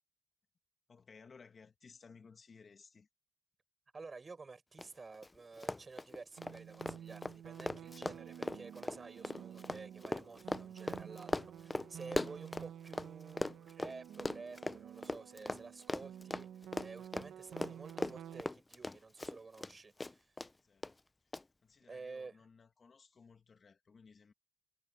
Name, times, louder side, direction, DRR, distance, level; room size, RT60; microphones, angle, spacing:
voice 1, 0.9-3.1 12.0-12.2 20.6-24.3, left 5 dB, 35° left, 2.4 m, -60 dB
voice 2, 3.9-20.3 21.9-22.3, right 4 dB, 30° right, 5.4 m, -51 dB
Run, 4.8-4.9 5.1-5.3 5.6-13.1 13.4-19.7 20.0-20.5 20.8-20.9 21.3-21.4, left 2 dB, 15° left, 0.6 m, -39 dB
sound 1, 6.4-18.4, right 10 dB, 75° right, 1.5 m, -51 dB
cardioid pair, 100°, 0 cm